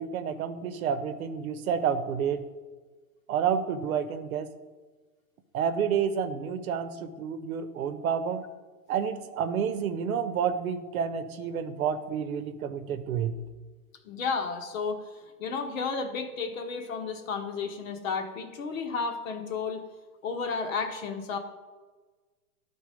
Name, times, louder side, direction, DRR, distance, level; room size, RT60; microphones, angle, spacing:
voice 1, 0.0-2.4 3.3-4.5 5.5-8.5 8.9-13.4, right 7 dB, 65° right, 11 dB, 0.9 m, -29 dB
voice 2, 14.0-15.1 15.4-19.8 20.2-21.4, left 5 dB, 60° left, 6 dB, 1.3 m, -32 dB
11.5 x 4.1 x 5.1 m, 1.3 s
hypercardioid pair, 140°, 46 cm